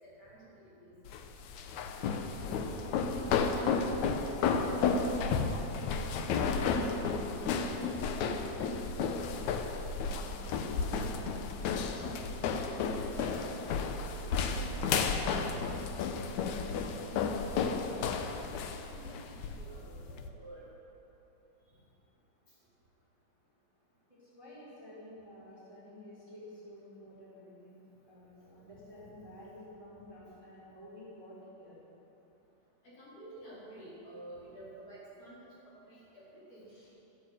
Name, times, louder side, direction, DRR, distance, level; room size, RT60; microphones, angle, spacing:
voice 1, 0.0-1.0 2.9-3.0 5.6-5.7 10.9-11.1 13.0-18.5 18.9-20.7 32.8-35.4 35.9-36.7, right 1 dB, 45° left, -10 dB, 5.5 m, -51 dB
sound 1, 1.1-20.3, left 5 dB, 70° left, 1.9 m, -32 dB
voice 2, 4.4-9.5 9.8-11.8 24.1-31.8 36.7-36.9, left 1 dB, 10° right, -10 dB, 4.0 m, -51 dB
15.0 x 9.5 x 8.1 m, 3.0 s
omnidirectional pair, 4.0 m